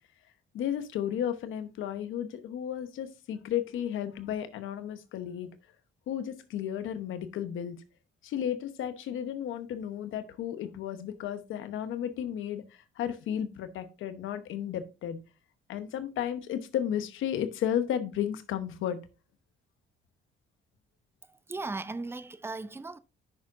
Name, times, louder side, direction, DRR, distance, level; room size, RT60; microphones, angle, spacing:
voice 1, 0.5-5.5 6.1-7.8 8.2-12.6 13.0-15.2 15.7-19.0, left 10 dB, 80° left, 1.0 m, -33 dB
voice 2, 21.2-23.0, right 3 dB, 10° right, 0.5 m, -37 dB
9.0 x 6.1 x 2.6 m
cardioid pair, 90°, 20 cm